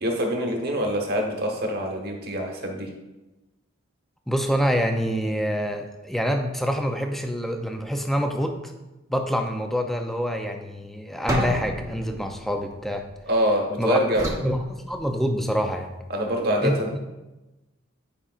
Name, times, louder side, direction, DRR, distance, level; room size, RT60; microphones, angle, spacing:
voice 1, 0.0-2.9 13.3-14.3 16.1-16.9, equal, 45° right, 1 dB, 1.1 m, -25 dB
voice 2, 4.3-8.7 9.1-13.0 13.8-14.0 14.4-15.9 16.6-16.8, equal, ahead, 4 dB, 0.4 m, -26 dB
sound 1, 11.3-13.5 14.1-15.5, right 1 dB, 15° right, 0.8 m, -32 dB
9.8 x 5.0 x 2.4 m, 1.1 s
head